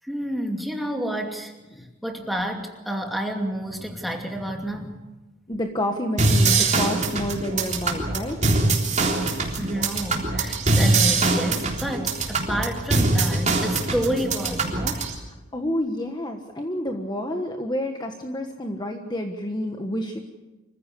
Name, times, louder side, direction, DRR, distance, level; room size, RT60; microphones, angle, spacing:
voice 1, 0.0-1.5 2.0-5.0 9.1-15.1, equal, ahead, 2 dB, 2.6 m, -29 dB
voice 2, 5.5-8.5 9.8-10.0 10.4-10.5 15.5-20.2, left 1 dB, 20° left, 4 dB, 1.4 m, -29 dB
sound 1, 6.2-15.1, right 3 dB, 35° right, 3.6 m, -23 dB
25.5 x 15.5 x 8.4 m, 1.1 s
head